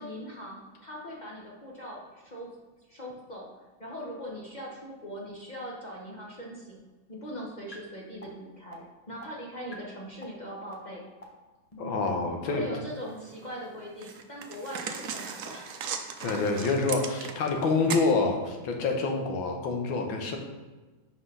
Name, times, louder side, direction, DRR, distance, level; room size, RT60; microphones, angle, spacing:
voice 1, 0.0-2.5 2.9-3.5 3.8-6.8 7.1-11.0 12.4-15.8, equal, 35° left, -3 dB, 0.8 m, -40 dB
sound 1, 7.7-7.8 8.2-8.3 8.7-8.8 9.2-9.3 9.7-9.8 10.2-10.3 10.7-10.8 11.2-11.3 11.7-13.5, right 3 dB, 50° left, 0.4 m, -46 dB
voice 2, 11.8-12.7 16.2-20.4, left 3 dB, 75° left, 2 dB, 1.7 m, -27 dB
sound 2, 13.1-13.2 14.0-17.6 17.9-18.1, right 7 dB, 90° right, 0.7 m, -36 dB
5.8 x 4.9 x 5.4 m, 1.2 s
omnidirectional pair, 2.2 m